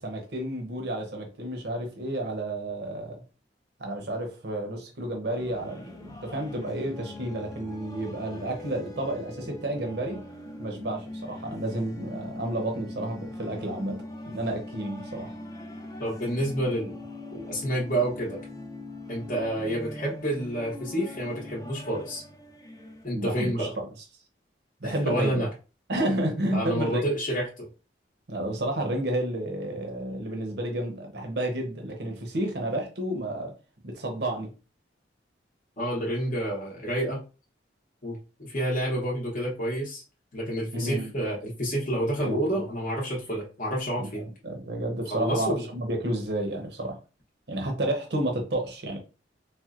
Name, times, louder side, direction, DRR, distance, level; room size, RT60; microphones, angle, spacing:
voice 1, 0.0-3.2 3.8-10.2 10.6-15.4 23.1-23.9 24.8-25.5 25.9-27.0 28.3-33.5 33.8-34.5 40.7-41.1 42.2-42.6 44.0-47.0 47.5-49.0, right 1 dB, 60° right, 0.7 m, -31 dB
sound 1, 5.3-23.1, left 1 dB, 20° left, 0.5 m, -41 dB
voice 2, 16.0-17.0 17.3-18.4 19.1-22.2 23.0-23.7 24.8-25.5 26.5-27.7 35.8-37.2 38.0-40.0 40.3-44.3 45.1-45.7, right 1 dB, 45° left, 0.8 m, -29 dB
4.3 x 2.0 x 2.4 m
head